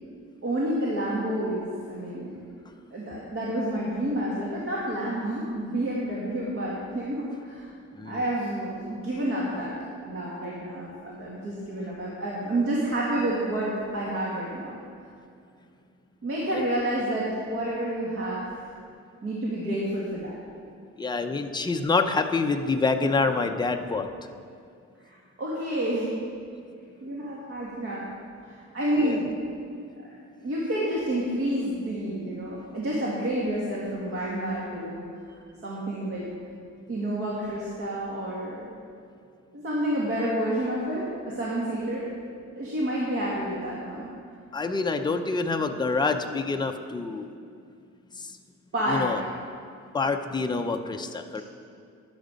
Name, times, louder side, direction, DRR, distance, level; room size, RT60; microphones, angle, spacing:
voice 1, 0.4-2.3 2.9-7.7 8.0-9.7 10.1-14.8 16.2-18.7 19.2-20.4 25.1-26.1 27.0-28.1 28.4-29.4 30.0-30.1 30.4-35.0 35.6-36.3 36.9-38.7 39.6-42.1 42.6-44.1 48.7-49.1, right 1 dB, 50° right, -6 dB, 2.0 m, -29 dB
voice 2, 21.0-24.1 29.0-29.2 44.5-47.3 48.9-49.2 49.9-51.4, left 4 dB, 15° left, 5 dB, 0.6 m, -26 dB
12.0 x 9.8 x 5.1 m, 2.4 s
wide cardioid pair, 160°, 29 cm